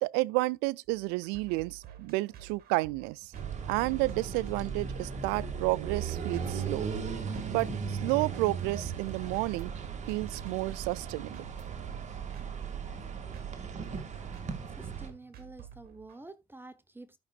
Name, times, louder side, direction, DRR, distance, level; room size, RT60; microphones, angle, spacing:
voice 1, 0.0-3.3 3.7-6.9 7.5-9.7 10.1-11.5, right 22 dB, 90° right, 0.4 m, -31 dB
sound 1, 0.9-16.2, right 10 dB, 65° right, 1.8 m, -51 dB
sound 2, 3.3-15.1, right 6 dB, 45° right, 2.2 m, -37 dB
voice 2, 14.7-17.2, right 2 dB, 15° right, 1.1 m, -49 dB
13.5 x 6.0 x 2.4 m
supercardioid pair, 75°, 17 cm